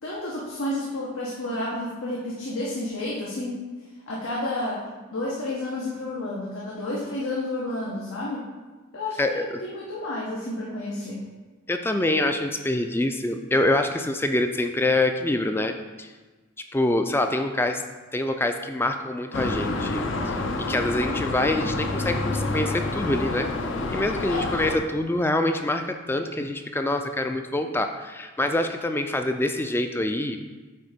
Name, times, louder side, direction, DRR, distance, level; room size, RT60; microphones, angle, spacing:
voice 1, 0.0-3.6 4.1-4.8 5.1-8.4 8.9-11.2 24.3-24.5, left 1 dB, 85° left, -5 dB, 1.2 m, -31 dB
voice 2, 11.7-15.7 16.0-16.1 16.7-17.8 18.1-20.4 20.7-23.5 23.9-30.4, left 1 dB, 10° left, 6 dB, 0.3 m, -25 dB
sound 1, 19.3-24.8, left 2 dB, 70° left, 0.7 m, -28 dB
8.7 x 3.5 x 5.1 m, 1.3 s
head